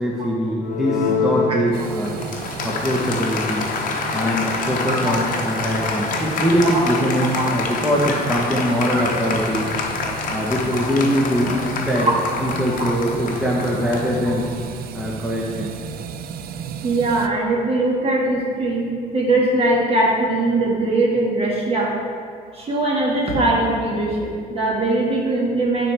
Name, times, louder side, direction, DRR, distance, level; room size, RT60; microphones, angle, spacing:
voice 1, 0.0-3.7 4.1-9.7 10.3-12.1 12.4-14.5 14.9-15.7, equal, 5° right, -5 dB, 0.9 m, -22 dB
Applause, 0.6-14.7, left 4 dB, 50° left, 0.8 m, -27 dB
sound 1, 1.7-17.3, right 7 dB, 65° right, 0.5 m, -34 dB
voice 2, 16.8-21.9 22.5-25.9, right 2 dB, 35° right, -3 dB, 1.8 m, -21 dB
11.5 x 4.4 x 3.4 m, 2.2 s
cardioid pair, 110°, 17 cm